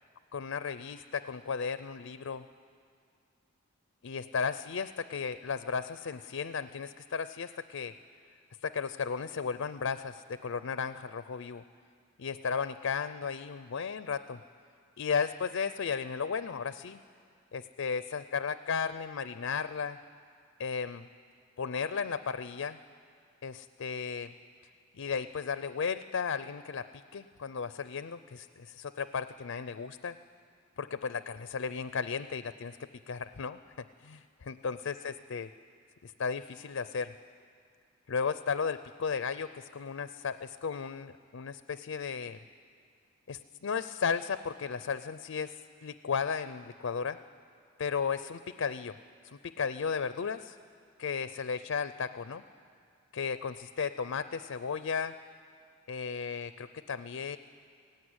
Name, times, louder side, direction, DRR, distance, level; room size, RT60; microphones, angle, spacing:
voice 1, 0.3-2.4 4.0-7.9 8.6-11.6 12.2-14.4 15.0-17.0 17.5-20.0 20.6-21.1 21.6-22.8 23.4-24.3 25.0-30.1 30.8-32.8 33.1-33.6 34.0-35.5 36.0-37.1 38.1-42.4 43.3-47.2 47.8-48.9 49.4-50.6 51.0-52.4 53.1-55.1 55.9-57.4, left 6 dB, 65° left, 13 dB, 0.5 m, -35 dB
17.5 x 16.0 x 9.6 m, 2.3 s
head